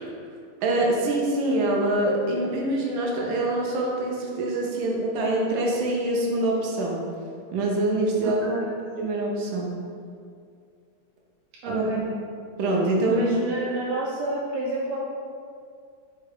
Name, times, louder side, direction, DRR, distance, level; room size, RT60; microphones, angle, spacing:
voice 1, 0.6-7.0 7.5-8.4 9.0-9.8 11.7-12.0 12.6-13.2, right 2 dB, 75° right, -2 dB, 1.4 m, -25 dB
voice 2, 8.2-8.7 11.6-12.0 13.1-15.0, right 2 dB, 90° right, -6 dB, 1.6 m, -29 dB
4.9 x 2.3 x 4.6 m, 2.3 s
omnidirectional pair, 2.4 m